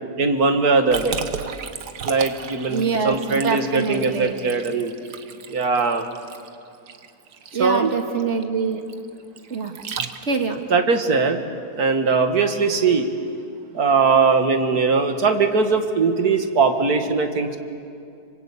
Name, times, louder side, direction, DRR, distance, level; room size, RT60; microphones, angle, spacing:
voice 1, 0.2-1.2 2.0-4.9 5.5-6.1 7.6-7.9 10.7-11.4 11.8-13.1 13.7-17.6, right 4 dB, 70° right, 6 dB, 2.2 m, -20 dB
Liquid, 0.9-10.6, right 6 dB, 85° right, 1.7 m, -34 dB
voice 2, 2.7-4.4 7.5-8.8 9.5-9.7 10.2-10.6, right 5 dB, 45° right, 5 dB, 2.0 m, -24 dB
26.0 x 24.5 x 8.6 m, 2.4 s
omnidirectional pair, 1.7 m